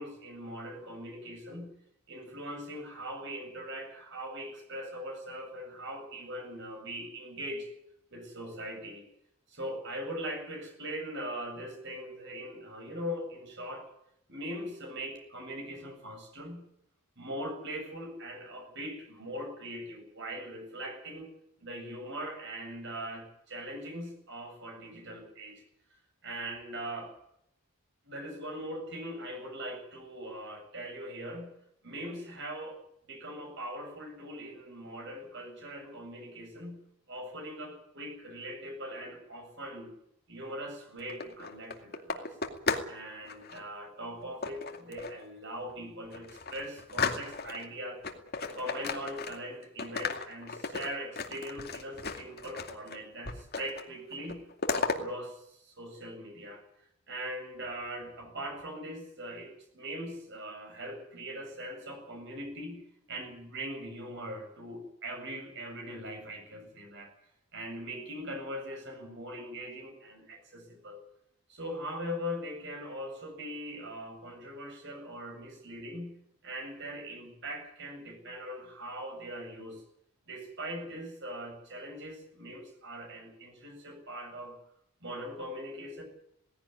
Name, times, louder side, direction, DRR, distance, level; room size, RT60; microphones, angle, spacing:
voice 1, 0.0-1.8 2.1-7.7 8.1-9.0 9.5-13.9 14.3-16.7 17.2-21.3 21.6-25.6 26.2-27.1 28.1-31.6 31.8-39.9 40.3-42.3 42.9-48.0 48.5-67.1 67.5-71.0 71.5-79.8 80.3-84.6 85.0-86.0, equal, 55° right, 4 dB, 8.0 m, -41 dB
sound 1, 41.0-43.0 43.2-43.6 44.4-45.2 45.7-45.8 46.1-47.7 48.0-49.5 49.8-53.0 53.3-53.9 54.1-55.0, left 4 dB, 45° left, 2.5 m, -35 dB
18.5 x 16.5 x 10.0 m, 0.76 s
head